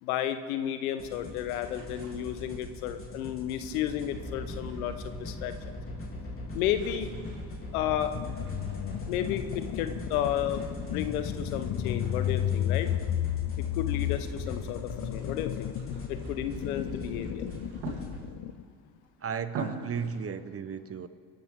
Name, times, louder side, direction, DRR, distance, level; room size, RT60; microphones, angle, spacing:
voice 1, 0.0-5.5 6.5-7.1 7.7-8.1 9.1-12.9 13.6-15.7 16.1-17.5, left 11 dB, 85° left, 10 dB, 1.1 m, -32 dB
sound 1, 1.0-18.2, left 1 dB, 30° left, 3.8 m, -40 dB
sound 2, 1.4-2.7 3.7-5.1 5.4-6.0 6.3-9.4 10.0-11.6 12.0-14.6 15.0-18.6 19.0-19.1 19.4-20.2, right 4 dB, 70° right, 3.2 m, -47 dB
sound 3, 8.1-18.6, left 12 dB, 50° left, 0.7 m, -33 dB
voice 2, 19.2-21.1, right 6 dB, 35° right, 13 dB, 1.0 m, -34 dB
24.5 x 12.0 x 3.8 m, 2.2 s
hypercardioid pair, 70°, 43 cm